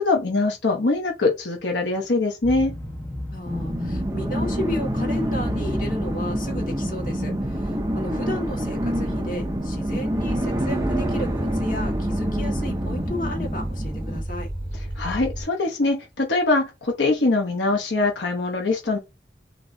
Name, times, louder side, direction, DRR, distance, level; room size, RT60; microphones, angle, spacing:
voice 1, 0.0-2.7 15.0-19.0, left 3 dB, 85° left, 1.0 m, -23 dB
sound 1, 2.4-7.6, left 1 dB, 10° left, 1.5 m, -34 dB
voice 2, 3.3-14.5, left 1 dB, 50° left, 1.7 m, -33 dB
sound 2, 3.5-14.2, equal, 20° right, 0.7 m, -27 dB
sound 3, 10.2-15.4, right 1 dB, 55° right, 1.9 m, -32 dB
6.0 x 3.1 x 2.7 m
head